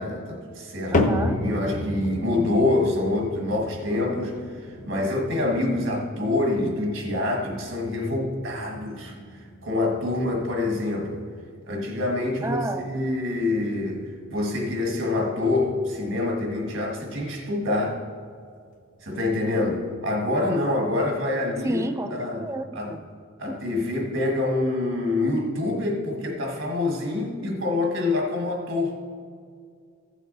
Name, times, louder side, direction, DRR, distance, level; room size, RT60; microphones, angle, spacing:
voice 1, 0.0-4.3 4.6-9.1 9.6-11.2 11.6-18.0 19.0-21.8 22.1-22.4 22.7-22.9 23.4-28.9, left 2 dB, 65° right, 1 dB, 1.7 m, -26 dB
sound 1, 0.9-17.3 17.6-18.1 18.7-18.8 19.6-19.7, left 2 dB, 40° left, 0.7 m, -33 dB
voice 2, 0.9-1.4 5.0-5.1 12.4-12.9 21.6-22.1 22.4-23.0 23.5-23.6, right 2 dB, 15° right, 9 dB, 0.4 m, -31 dB
15.0 x 6.2 x 4.0 m, 2.1 s
head